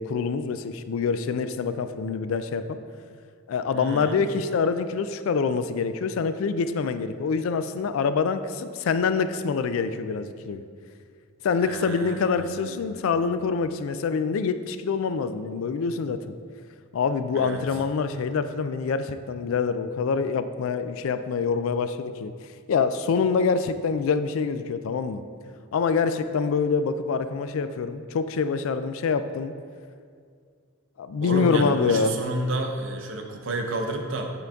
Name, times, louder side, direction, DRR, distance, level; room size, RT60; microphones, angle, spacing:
voice 1, 0.0-2.8 3.5-10.6 11.4-16.2 16.9-22.3 22.7-25.2 25.7-29.5 31.0-32.2, left 5 dB, 70° left, 11 dB, 0.3 m, -25 dB
voice 2, 3.7-4.2 11.6-13.1 17.3-17.6 31.2-34.3, right 2 dB, 60° right, 3 dB, 0.6 m, -31 dB
8.1 x 3.8 x 3.5 m, 2.1 s
head